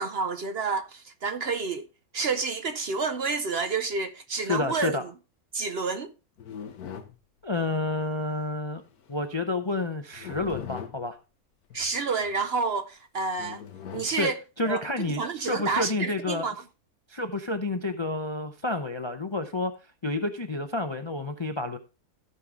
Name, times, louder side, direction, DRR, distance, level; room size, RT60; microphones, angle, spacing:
voice 1, 0.0-1.9 2.1-5.0 5.5-6.1 11.7-13.6 13.9-14.4 14.7-14.8 15.1-16.5, right 4 dB, 55° right, 0.8 m, -29 dB
voice 2, 4.4-5.1 7.4-8.8 9.1-11.2 14.2-14.3 14.6-16.5 17.1-19.7 20.0-21.8, left 2 dB, 35° left, 0.4 m, -29 dB
sound 1, 6.4-7.2 8.9-9.1 10.1-11.1 11.7-12.3 13.4-14.2 15.0-15.8, left 8 dB, 90° left, 1.5 m, -41 dB
15.0 x 5.6 x 3.6 m
omnidirectional pair, 1.6 m